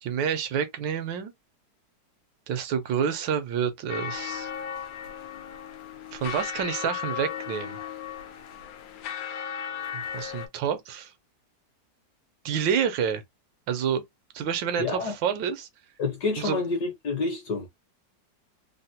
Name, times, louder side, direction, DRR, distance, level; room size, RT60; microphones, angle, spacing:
voice 1, 0.0-1.3 2.5-4.5 6.1-7.8 9.9-11.1 12.4-13.2 13.7-14.0 14.3-15.7 16.4-16.6, right 7 dB, 85° right, 1.5 m, -28 dB
sound 1, 3.9-10.5, left 9 dB, 85° left, 1.4 m, -36 dB
voice 2, 14.8-15.1 16.0-17.7, left 3 dB, 65° left, 1.5 m, -28 dB
3.9 x 2.1 x 2.8 m
omnidirectional pair, 2.0 m